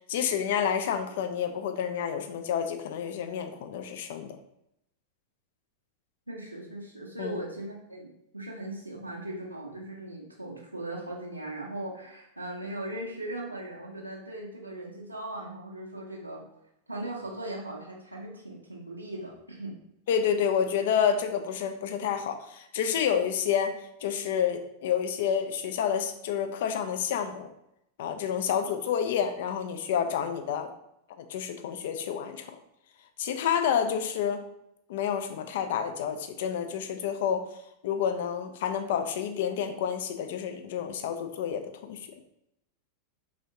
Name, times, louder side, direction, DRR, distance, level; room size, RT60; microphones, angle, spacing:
voice 1, 0.1-4.4 7.2-7.4 20.1-23.7 24.0-27.5 28.0-30.7 31.3-32.5 33.2-34.4 34.9-37.5 37.8-42.1, left 8 dB, 55° left, 7 dB, 0.4 m, -29 dB
voice 2, 6.3-8.1 8.3-16.4 16.9-19.7, right 1 dB, 85° right, -3 dB, 0.6 m, -38 dB
3.5 x 3.5 x 2.6 m, 0.78 s
figure-of-eight pair, 90°, 0 cm